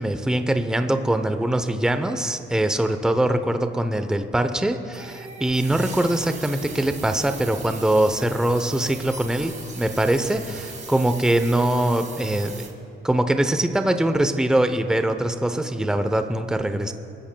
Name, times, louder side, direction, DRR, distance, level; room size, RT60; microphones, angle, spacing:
voice 1, 0.0-12.6 13.0-16.9, right 1 dB, 5° right, 8 dB, 0.7 m, -22 dB
sound 1, 4.9-12.7, right 4 dB, 40° right, 2.0 m, -39 dB
27.5 x 13.0 x 2.3 m, 2.7 s
cardioid pair, 90°, 20 cm